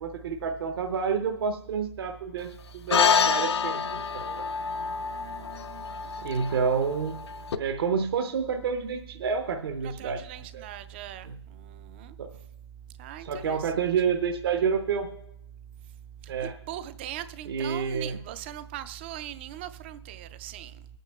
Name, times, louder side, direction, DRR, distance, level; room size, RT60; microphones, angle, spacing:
voice 1, 0.0-4.5 6.2-7.1 7.6-10.2 10.5-10.6 11.2-11.4 12.2-12.3 13.2-15.1 16.3-16.5 17.5-18.2, right 6 dB, 60° right, 0.7 m, -29 dB
sound 1, 2.9-7.6, left 6 dB, 70° left, 0.5 m, -27 dB
voice 2, 5.0-6.1 6.5-6.6 9.8-11.3 11.6-12.1 13.0-13.9 16.7-20.7, right 11 dB, 25° right, 0.3 m, -40 dB
23.0 x 9.0 x 2.3 m
hypercardioid pair, 150°, 14 cm